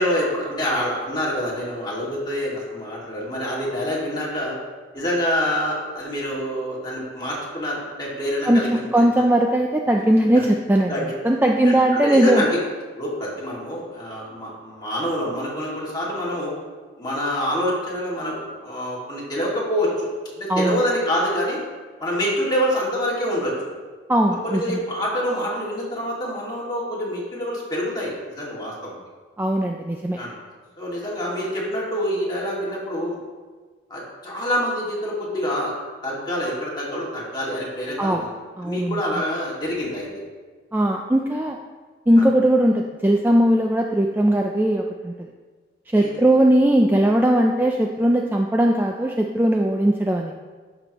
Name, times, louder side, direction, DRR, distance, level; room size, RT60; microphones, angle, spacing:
voice 1, 0.0-4.5 4.9-9.2 10.9-11.0 11.6-12.6 13.0-16.5 17.0-20.1 20.4-21.6 22.0-23.5 24.4-29.0 30.2-30.3 30.8-33.2 33.9-35.7 36.0-38.3 38.6-40.1 42.2-42.3 46.0-46.1, equal, 25° left, -5 dB, 2.1 m, -26 dB
voice 2, 8.5-12.4 20.5-20.8 24.1-24.8 29.4-30.2 38.0-38.3 38.6-39.0 40.7-41.6 42.1-45.3 45.9-50.3, right 1 dB, 10° right, 1 dB, 0.3 m, -19 dB
11.5 x 6.0 x 3.0 m, 1.4 s
head